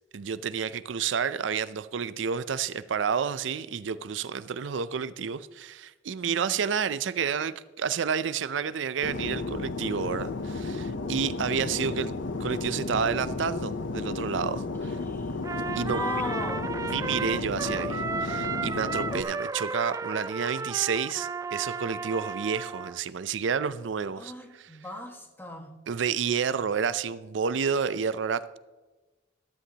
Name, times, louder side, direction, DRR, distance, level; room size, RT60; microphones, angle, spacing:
voice 1, 0.1-12.1 12.4-15.0 15.7-16.0 16.8-24.3 25.9-28.6, right 6 dB, 90° right, 15 dB, 0.5 m, -30 dB
voice 2, 6.2-6.6 15.0-15.4 15.8-16.7 24.2-25.8, left 2 dB, 10° left, 3 dB, 1.6 m, -37 dB
Fixed-wing aircraft airplane, 9.0-19.2, left 3 dB, 85° left, 0.7 m, -33 dB
Trumpet, 15.4-23.0, right 4 dB, 20° right, 0.4 m, -34 dB
14.0 x 13.0 x 2.9 m, 1.2 s
head